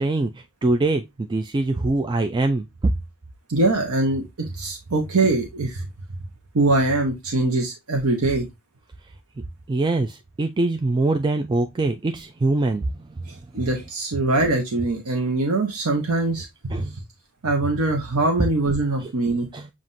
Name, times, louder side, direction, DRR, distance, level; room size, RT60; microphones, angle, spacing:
voice 1, 0.0-2.9 9.7-13.2 16.7-17.0 19.0-19.1 19.5-19.7, right 2 dB, 20° right, 0.3 m, -23 dB
voice 2, 3.5-5.9 6.5-8.5 13.3-16.8 17.4-19.5, right 2 dB, 80° right, 0.9 m, -22 dB
7.3 x 2.5 x 2.5 m
head